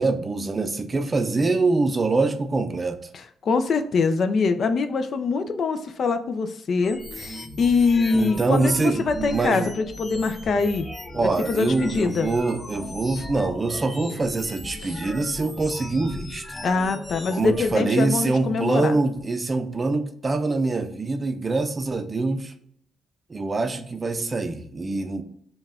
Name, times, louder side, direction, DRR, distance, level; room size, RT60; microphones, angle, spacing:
voice 1, 0.0-3.0 8.1-9.7 11.1-16.6 17.3-22.5 23.3-25.2, right 3 dB, 30° right, 8 dB, 0.5 m, -24 dB
voice 2, 3.1-10.9 11.2-12.3 14.8-15.0 16.6-19.0, left 4 dB, 55° left, 8 dB, 0.5 m, -24 dB
sound 1, 6.8-17.7, left 2 dB, 15° left, 0.7 m, -38 dB
5.3 x 2.3 x 3.6 m, 0.65 s
cardioid pair, 90°, 0 cm